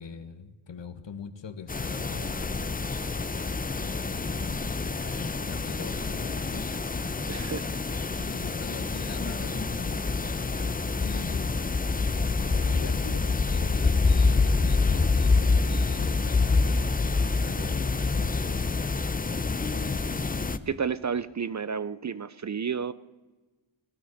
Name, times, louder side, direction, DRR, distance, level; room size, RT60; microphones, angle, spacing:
voice 1, 0.0-2.8 3.8-6.7 8.2-10.0 11.0-12.0 12.4-16.9 17.4-18.6 19.7-20.2 20.5-20.8, left 6 dB, 65° left, 10 dB, 1.4 m, -43 dB
sound 1, 1.7-20.6, left 3 dB, 20° left, 0.6 m, -27 dB
voice 2, 7.3-7.7 20.7-22.9, right 6 dB, 40° right, 16 dB, 0.5 m, -31 dB
17.5 x 12.5 x 6.4 m, 1.2 s
wide cardioid pair, 110°, 48 cm